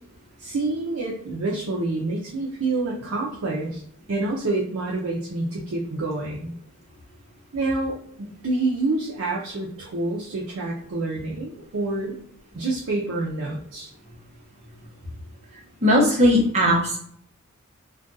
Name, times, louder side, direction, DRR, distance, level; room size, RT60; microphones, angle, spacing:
voice 1, 0.4-3.8 4.1-6.5 7.5-12.2 12.5-13.9, right 2 dB, 70° right, -3 dB, 0.5 m, -27 dB
voice 2, 15.8-17.0, equal, 30° right, -2 dB, 0.7 m, -18 dB
2.4 x 2.3 x 3.8 m, 0.63 s
head